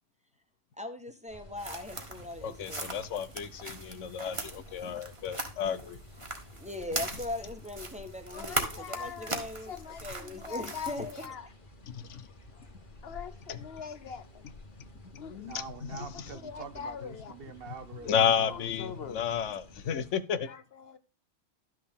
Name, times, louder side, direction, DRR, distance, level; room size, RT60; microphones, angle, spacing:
voice 1, 0.8-3.0 6.5-11.3, left 2 dB, 5° right, 1.1 m, -40 dB
sound 1, 1.3-20.1, left 1 dB, 45° left, 1.8 m, -52 dB
sound 2, 1.6-11.3, right 2 dB, 25° right, 1.4 m, -40 dB
voice 2, 2.4-6.0 11.8-12.3 13.5-13.6 15.8-16.0 18.0-20.5, left 8 dB, 85° left, 1.1 m, -31 dB
voice 3, 8.3-9.3 9.6-11.4 13.0-14.4 15.1-15.5 16.4-17.3 18.4-19.3 20.4-21.0, left 7 dB, 60° left, 0.9 m, -42 dB
voice 4, 15.4-18.7, right 6 dB, 55° right, 1.0 m, -45 dB
12.0 x 6.4 x 3.6 m
omnidirectional pair, 1.2 m